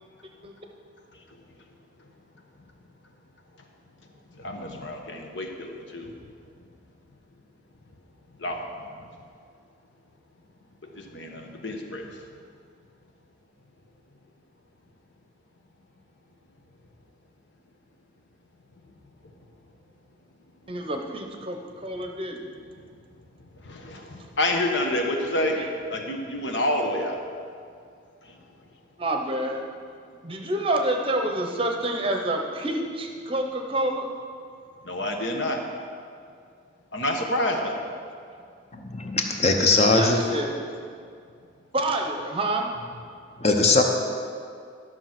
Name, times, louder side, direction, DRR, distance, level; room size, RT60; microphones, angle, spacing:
voice 1, 4.4-6.1 8.4-8.6 10.9-12.1 23.7-25.6 25.9-27.2 34.8-35.6 36.9-37.8, left 1 dB, 65° left, 2 dB, 1.2 m, -28 dB
voice 2, 20.7-22.4 25.6-25.7 29.0-29.6 30.2-34.1 39.9-40.6 41.7-42.7, right 1 dB, 25° right, 3 dB, 0.8 m, -28 dB
voice 3, 38.7-40.2 43.4-43.8, left 3 dB, 30° left, 3 dB, 0.9 m, -20 dB
12.0 x 6.1 x 6.0 m, 2.3 s
head